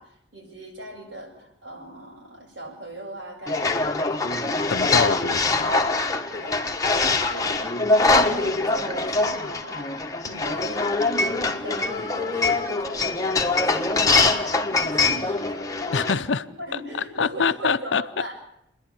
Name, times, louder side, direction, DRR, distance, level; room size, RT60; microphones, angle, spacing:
voice 1, 0.0-3.7 4.0-4.6 5.4-6.7 7.3-7.7 8.1-10.9 11.6-18.3, right 1 dB, 85° right, 7.4 m, -39 dB
sound 1, 3.5-16.1, left 3 dB, 20° left, 1.3 m, -23 dB
voice 2, 4.7-5.7 7.1-7.3 15.9-16.4 17.2-18.0, left 5 dB, 85° left, 0.7 m, -25 dB
28.5 x 11.0 x 8.7 m
head